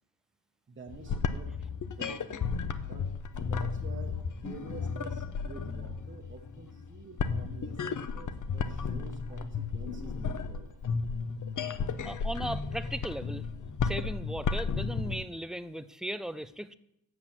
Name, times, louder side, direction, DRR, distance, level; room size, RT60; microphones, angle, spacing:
voice 1, 0.7-1.7 1.9-10.8, right 4 dB, 25° right, 1 dB, 1.2 m, -49 dB
sound 1, 0.9-15.2, left 5 dB, 40° left, 0.8 m, -34 dB
voice 2, 12.0-13.5 13.8-16.7, right 1 dB, ahead, 13 dB, 0.4 m, -37 dB
8.0 x 5.9 x 7.3 m, 0.82 s
cardioid pair, 65°, 46 cm